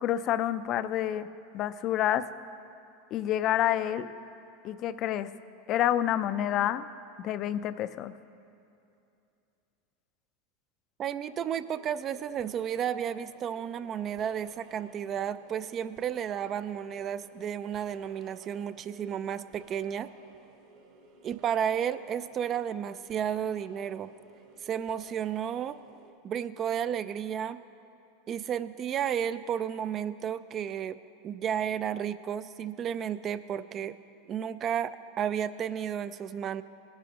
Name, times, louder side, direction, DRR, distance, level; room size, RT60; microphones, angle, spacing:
voice 1, 0.0-1.3 1.5-2.3 3.1-4.1 4.6-5.3 5.7-6.8 7.2-8.1, left 11 dB, 45° left, 14 dB, 0.4 m, -28 dB
voice 2, 11.0-20.1 21.2-24.1 24.6-25.8 26.2-27.6 28.3-31.0 31.2-34.0 34.3-36.6, right 9 dB, 35° right, 14 dB, 0.4 m, -32 dB
sound 1, 11.2-26.1, right 3 dB, 65° right, 2.7 m, -57 dB
19.0 x 10.5 x 2.9 m, 2.7 s
hypercardioid pair, 105°, 0 cm